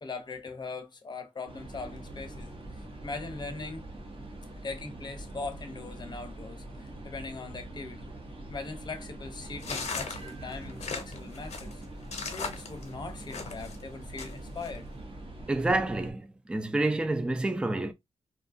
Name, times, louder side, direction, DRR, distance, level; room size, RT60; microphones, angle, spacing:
voice 1, 0.0-3.9 4.6-8.1 8.5-11.8 12.3-14.9, left 3 dB, 40° left, 0.6 m, -40 dB
sound 1, 1.5-16.1, right 1 dB, 50° right, 0.8 m, -43 dB
sound 2, 9.6-13.8 14.2-14.7, left 5 dB, 85° left, 0.7 m, -37 dB
voice 2, 15.5-17.9, right 2 dB, 10° right, 0.3 m, -28 dB
2.6 x 2.3 x 2.5 m
wide cardioid pair, 150°, 11 cm